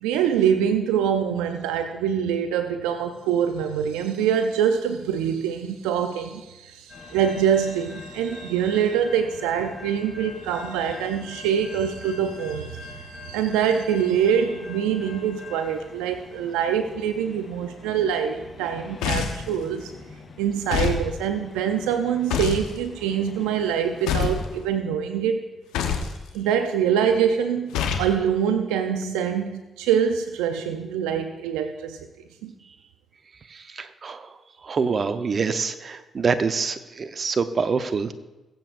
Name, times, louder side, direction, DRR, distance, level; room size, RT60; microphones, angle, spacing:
voice 1, 0.0-19.9 20.4-25.4 26.3-32.0 32.4-32.5, right 8 dB, 85° right, 8 dB, 0.5 m, -24 dB
sound 1, 6.9-24.6, left 4 dB, 55° left, 4.0 m, -44 dB
sound 2, 19.0-19.5 20.7-21.0 22.3-22.7 24.1-24.5 25.7-26.1 27.7-28.1, left 7 dB, 85° left, 1.0 m, -25 dB
voice 2, 33.5-34.4 34.6-38.1, right 5 dB, 50° right, 10 dB, 0.8 m, -26 dB
21.5 x 7.9 x 2.6 m, 1.1 s
hypercardioid pair, 45°, 0 cm